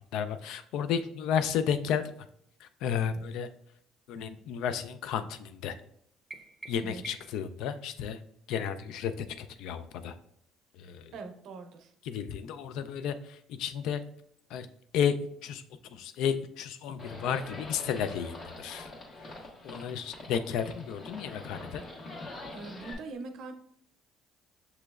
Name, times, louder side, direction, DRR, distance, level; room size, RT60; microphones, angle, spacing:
voice 1, 0.1-2.0 2.6-3.5 4.1-5.7 6.7-8.2 8.5-10.1 10.8-11.1 12.1-14.0 14.5-14.7 14.9-15.2 15.4-15.6 15.9-18.9 19.6-21.8, left 8 dB, 75° left, 11 dB, 0.3 m, -32 dB
sound 1, 6.3-7.5, right 3 dB, 20° right, 0.6 m, -47 dB
voice 2, 6.7-7.1 11.1-11.9 22.5-23.5, right 3 dB, 65° right, 6 dB, 0.5 m, -42 dB
Livestock farm animals working animals, 17.0-22.9, left 2 dB, 45° left, 1.3 m, -44 dB
6.7 x 3.0 x 2.3 m, 0.68 s
supercardioid pair, 80°, 0 cm